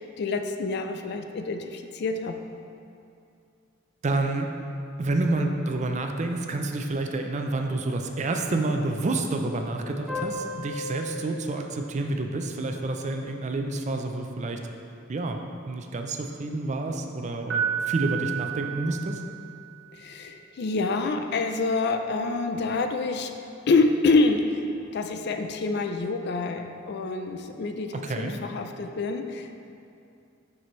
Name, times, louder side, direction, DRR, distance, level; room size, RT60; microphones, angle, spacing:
voice 1, 0.2-2.4 20.0-23.3 23.7-24.7 24.9-29.6, left 3 dB, 55° left, 5 dB, 0.4 m, -27 dB
voice 2, 4.0-4.5 5.0-14.6 15.1-15.4 15.7-19.2 27.9-28.4, right 2 dB, 35° right, 4 dB, 0.4 m, -29 dB
sound 1, 10.1-13.2, left 2 dB, ahead, 1.1 m, -37 dB
Piano, 17.5-19.6, right 8 dB, 65° right, 1.1 m, -30 dB
6.7 x 6.1 x 3.1 m, 2.5 s
head